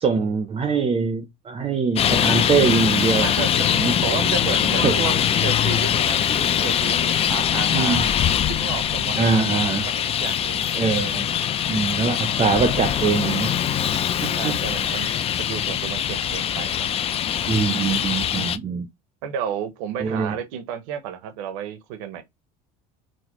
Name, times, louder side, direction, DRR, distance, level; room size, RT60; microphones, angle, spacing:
voice 1, 0.0-3.3 3.7-4.0 4.8-5.0 7.7-8.1 9.2-9.9 10.8-11.3 11.7-13.6 13.9-14.6 14.9-15.1 17.5-18.9 20.0-20.3, right 5 dB, 30° right, 0.6 m, -23 dB
Traffic noise roadway noise, 2.0-18.6, left 9 dB, 35° left, 0.3 m, -22 dB
voice 2, 3.2-8.0 8.5-10.7 14.3-16.9 19.2-22.2, right 8 dB, 85° right, 0.7 m, -32 dB
4.1 x 2.0 x 3.0 m
supercardioid pair, 95°, 18 cm